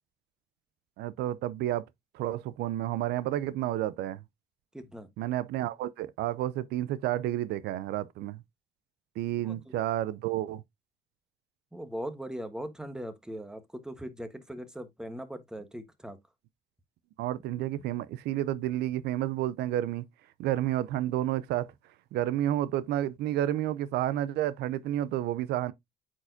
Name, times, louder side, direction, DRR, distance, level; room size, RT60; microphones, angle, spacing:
voice 1, 1.0-1.8 2.1-4.2 5.2-8.4 9.2-10.6 17.2-20.1 20.4-21.7 22.1-25.7, right 13 dB, 75° right, 0.5 m, -30 dB
voice 2, 4.7-5.1 9.4-9.7 11.7-16.2, equal, 5° right, 1.1 m, -40 dB
8.5 x 4.6 x 2.6 m
cardioid pair, 110°, 17 cm